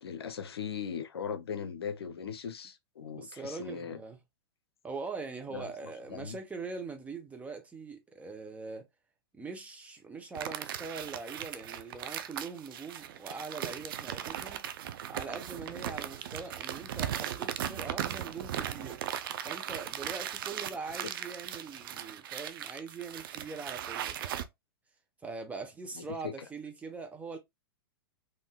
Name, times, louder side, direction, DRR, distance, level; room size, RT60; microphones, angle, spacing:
voice 1, 0.0-4.0 5.5-5.7 6.1-6.4 26.0-26.3, left 7 dB, 90° left, 0.6 m, -39 dB
voice 2, 3.1-4.2 4.8-8.9 9.3-14.7 15.1-19.0 19.4-24.5 25.2-27.4, right 4 dB, 10° right, 0.8 m, -42 dB
sound 1, 10.3-24.4, right 10 dB, 65° right, 0.5 m, -38 dB
3.7 x 2.6 x 2.2 m
hypercardioid pair, 125°, 13 cm